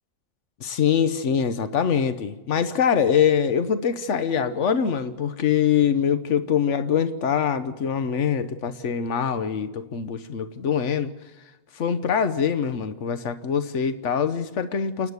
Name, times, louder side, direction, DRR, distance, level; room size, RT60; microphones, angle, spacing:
voice 1, 0.6-11.1 11.7-15.1, left 7 dB, 90° left, 11 dB, 1.3 m, -23 dB
28.5 x 9.9 x 9.6 m, 1.1 s
omnidirectional pair, 1.2 m